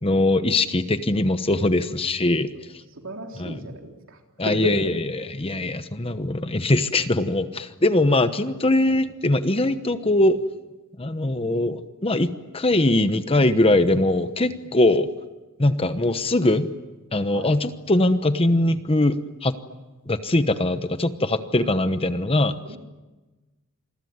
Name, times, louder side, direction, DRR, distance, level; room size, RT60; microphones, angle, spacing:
voice 1, 0.0-2.5 3.4-3.6 4.4-10.4 11.0-15.1 15.6-16.7 17.1-19.5 20.1-22.5, left 2 dB, 25° left, 11 dB, 1.0 m, -21 dB
voice 2, 3.0-4.2 4.4-4.9 8.9-9.0 17.3-17.5 22.6-22.8, right 1 dB, 60° right, 3 dB, 3.8 m, -33 dB
27.5 x 22.5 x 9.5 m, 1.2 s
head